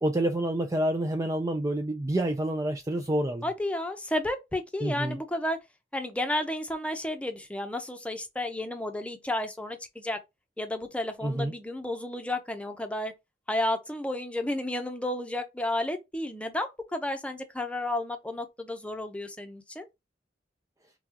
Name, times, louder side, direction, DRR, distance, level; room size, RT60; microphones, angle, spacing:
voice 1, 0.0-3.4 4.8-5.2 11.2-11.5, right 1 dB, 20° right, 0.4 m, -28 dB
voice 2, 3.4-5.6 5.9-10.2 10.6-13.1 13.5-19.9, left 1 dB, 5° left, 0.7 m, -32 dB
5.9 x 2.3 x 2.9 m
head